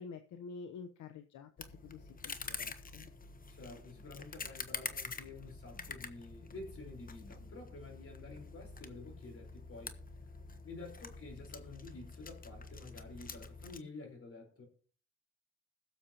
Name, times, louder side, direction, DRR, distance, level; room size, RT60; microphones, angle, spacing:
voice 1, 0.0-3.1, left 5 dB, 70° left, 0.9 m, -49 dB
sound 1, 1.6-13.8, left 4 dB, 30° left, 1.0 m, -47 dB
voice 2, 3.5-9.9 10.6-14.6, left 3 dB, 45° left, 4.4 m, -50 dB
21.0 x 7.1 x 2.9 m
cardioid pair, 90°, 30 cm